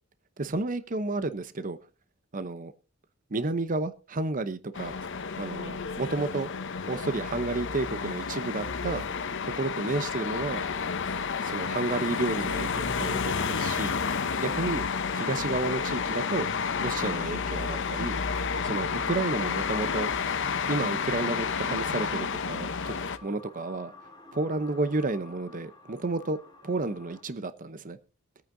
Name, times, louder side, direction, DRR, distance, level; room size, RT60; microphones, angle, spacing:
voice 1, 0.4-1.8 2.3-2.7 3.3-4.9 5.4-6.5 6.9-9.0 9.4-10.6 11.4-14.0 14.4-14.9 15.1-16.5 16.8-18.2 18.6-20.1 20.7-22.9 23.2-23.9 24.3-26.4 26.6-28.0, right 3 dB, 40° right, 13 dB, 0.8 m, -31 dB
sound 1, 4.7-23.2, left 5 dB, 60° left, 0.8 m, -30 dB
sound 2, 10.5-27.2, left 3 dB, 20° left, 2.2 m, -52 dB
23.5 x 9.0 x 2.6 m, 0.33 s
head